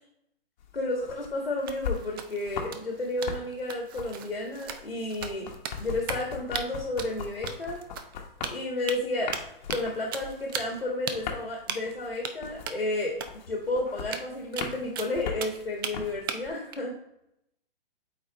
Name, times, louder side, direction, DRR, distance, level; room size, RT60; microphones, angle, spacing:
sound 1, 0.6-2.8 3.1-16.5, left 6 dB, 50° left, 1.1 m, -39 dB
voice 1, 0.8-5.5 5.8-7.8 8.5-9.3 9.7-13.2 13.5-16.9, left 2 dB, 90° left, -1 dB, 1.5 m, -32 dB
sound 2, 1.6-6.3 6.5-6.6 7.0-8.2 8.4-9.0 9.3-9.9 10.1-10.8 11.1-11.2 11.7-11.9 12.2-12.3 12.7-12.8 13.2-13.3 13.6-13.7 14.0-15.9 16.3-16.7, right 7 dB, 25° right, 0.4 m, -37 dB
8.1 x 4.2 x 3.0 m, 0.80 s
figure-of-eight pair, 125°, 29 cm